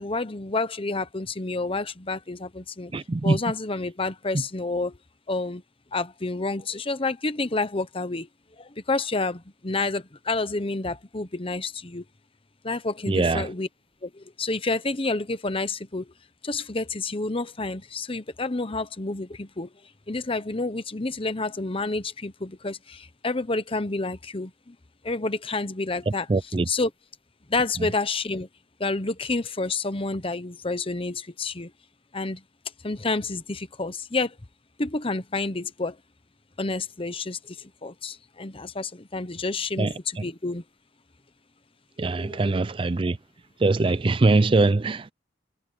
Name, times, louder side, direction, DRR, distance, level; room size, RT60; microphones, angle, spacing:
voice 1, 0.0-2.9 3.2-5.0 5.3-5.6 5.9-8.3 8.6-12.0 12.6-13.7 14.0-16.1 16.4-19.7 20.1-24.8 25.0-26.9 27.5-28.5 28.8-31.7 32.1-32.4 32.8-34.4 34.8-36.0 36.6-40.6 42.2-42.5, left 3 dB, 30° left, 1.0 m, -29 dB
voice 2, 2.9-3.4 13.1-13.5 26.3-26.7 39.8-39.9 42.0-43.2 43.6-45.1, right 3 dB, 30° right, 0.4 m, -22 dB
head